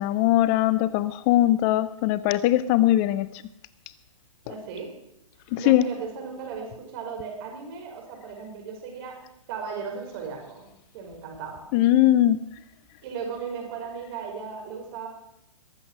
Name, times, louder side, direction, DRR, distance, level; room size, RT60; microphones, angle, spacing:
voice 1, 0.0-3.3 5.5-5.9 11.7-12.4, left 14 dB, 30° left, 16 dB, 0.5 m, -20 dB
voice 2, 4.4-4.9 5.6-9.2 9.5-10.6 10.9-11.7 13.0-15.1, right 6 dB, 45° right, 2 dB, 5.4 m, -36 dB
22.0 x 7.9 x 6.4 m, 0.84 s
hypercardioid pair, 130°, 17 cm